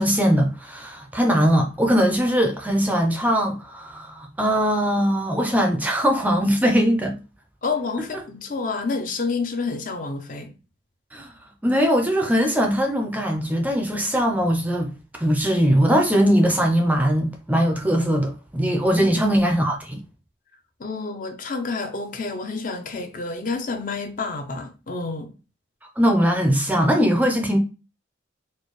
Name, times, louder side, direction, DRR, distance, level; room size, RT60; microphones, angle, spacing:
voice 1, 0.0-7.2 11.1-11.3 11.6-14.9 15.2-20.0 26.0-27.6, equal, 10° right, 0.4 m, -20 dB
voice 2, 7.6-10.6 18.9-19.4 20.8-25.3, left 4 dB, 45° left, 0.5 m, -29 dB
4.3 x 2.1 x 3.1 m
head